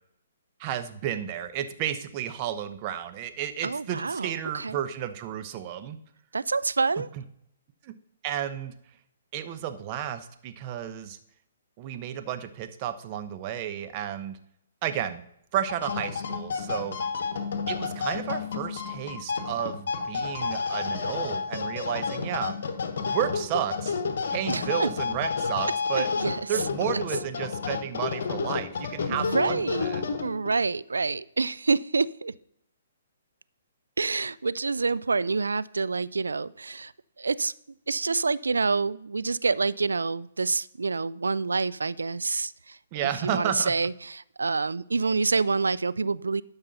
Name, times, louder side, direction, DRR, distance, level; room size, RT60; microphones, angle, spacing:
voice 1, 0.6-6.0 7.0-7.2 7.8-7.9 8.2-8.7 9.3-11.2 11.8-14.4 14.8-15.2 15.5-17.0 17.7-22.5 23.0-24.0 24.3-26.1 26.5-30.0 42.9-43.7, right 10 dB, 35° right, 9 dB, 0.8 m, -32 dB
voice 2, 3.6-4.8 6.3-7.1 24.5-24.9 26.0-26.4 29.1-29.9 30.2-32.3 34.0-36.9 37.2-37.5 37.9-42.5 43.2-46.4, right 4 dB, 90° right, 19 dB, 0.3 m, -27 dB
sound 1, 15.6-30.6, left 5 dB, 65° left, 1.2 m, -31 dB
12.0 x 5.4 x 4.1 m, 0.74 s
hypercardioid pair, 140°, 0 cm